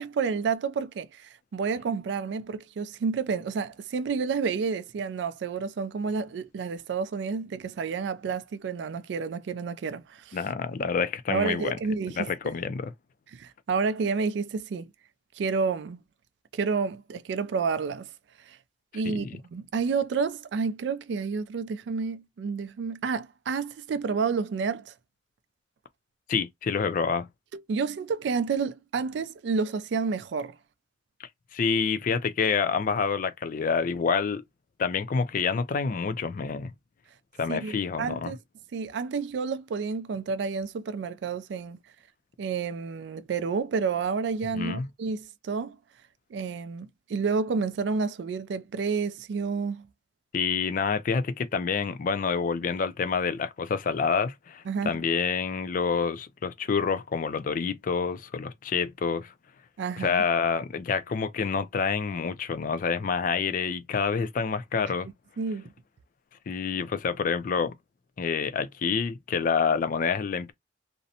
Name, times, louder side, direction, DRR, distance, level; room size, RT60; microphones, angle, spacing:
voice 1, 0.0-10.4 11.3-12.6 13.3-14.9 15.4-16.0 16.5-18.1 18.5-18.6 18.9-24.9 27.7-30.6 37.5-38.4 38.7-41.8 42.4-45.8 46.3-49.8 54.7-55.0 59.8-60.2 65.4-65.7, right 5 dB, 70° right, 0.3 m, -30 dB
voice 2, 10.3-11.8 12.2-12.9 19.1-19.4 26.3-27.3 31.2-34.4 34.8-36.7 37.4-38.3 44.5-44.9 50.3-59.3 60.0-65.1 66.5-67.7 68.2-70.5, left 5 dB, 45° left, 0.3 m, -27 dB
2.5 x 2.1 x 2.7 m
head